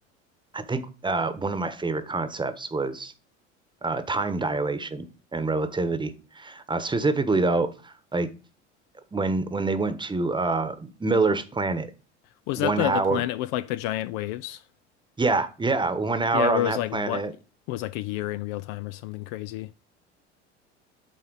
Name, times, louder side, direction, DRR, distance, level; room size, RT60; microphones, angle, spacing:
voice 1, 0.5-3.1 3.8-5.1 5.3-8.3 9.1-11.9 12.6-13.2 15.2-17.3, right 3 dB, 15° right, 1.1 m, -26 dB
voice 2, 12.5-14.6 16.3-17.2 17.7-19.7, left 15 dB, 50° left, 0.4 m, -29 dB
11.5 x 4.1 x 4.0 m
figure-of-eight pair, 70°, 36 cm